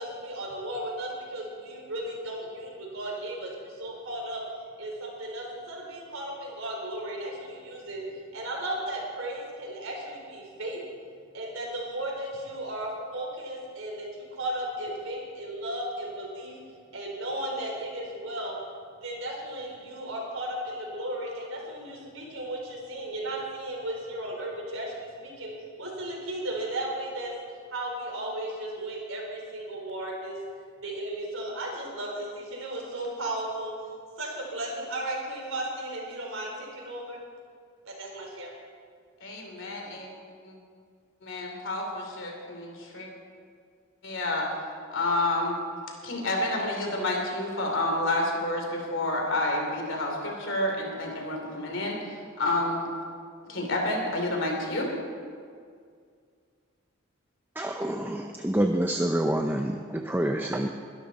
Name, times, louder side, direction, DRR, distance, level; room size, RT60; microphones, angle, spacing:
voice 1, 0.0-4.4 4.8-10.8 11.3-16.6 16.9-18.6 19.0-25.5 25.8-27.3 27.7-30.4 30.8-33.7 34.2-37.2 37.9-38.5, right 1 dB, 75° right, -1 dB, 4.1 m, -35 dB
voice 2, 39.2-40.1 40.4-40.5 41.2-43.1 44.0-44.5 44.9-45.6 46.0-52.9 53.4-54.9, left 2 dB, 65° left, 1 dB, 3.2 m, -29 dB
voice 3, 57.6-60.7, right 1 dB, 10° right, 4 dB, 0.5 m, -27 dB
22.0 x 12.0 x 4.2 m, 2.1 s
head